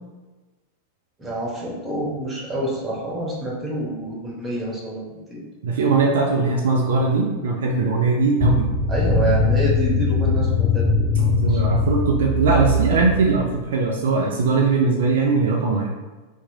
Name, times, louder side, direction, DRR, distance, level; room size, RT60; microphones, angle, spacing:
voice 1, 1.2-5.4 8.9-10.9 11.5-11.6, right 1 dB, 10° right, -4 dB, 0.9 m, -27 dB
voice 2, 5.6-8.7 11.2-15.9, right 4 dB, 60° right, -1 dB, 0.3 m, -20 dB
sound 1, 8.4-13.6, left 3 dB, 20° left, 0.4 m, -21 dB
2.8 x 2.4 x 2.7 m, 1.2 s
figure-of-eight pair, 90°, 0 cm